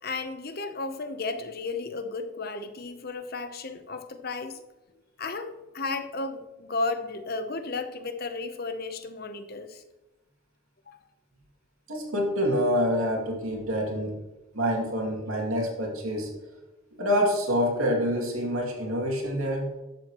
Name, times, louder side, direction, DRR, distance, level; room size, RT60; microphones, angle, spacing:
voice 1, 0.0-4.6 5.2-9.8 10.9-11.0, left 3 dB, 45° left, 8 dB, 0.8 m, -34 dB
voice 2, 11.9-14.2 14.5-16.3 16.9-19.7, equal, 90° right, -1 dB, 2.5 m, -26 dB
12.0 x 7.7 x 3.0 m, 1.0 s
head